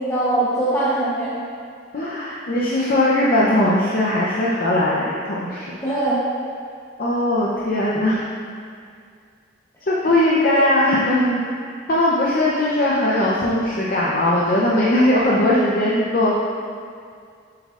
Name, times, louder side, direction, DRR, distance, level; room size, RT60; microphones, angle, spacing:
voice 1, 0.0-1.4 5.8-6.2 10.4-10.6 11.2-11.4, right 2 dB, 15° left, -10 dB, 0.9 m, -22 dB
voice 2, 1.9-5.7 7.0-8.2 9.9-11.3 11.9-16.3, left 1 dB, 45° left, -6 dB, 0.7 m, -19 dB
7.7 x 7.4 x 2.5 m, 2.2 s
head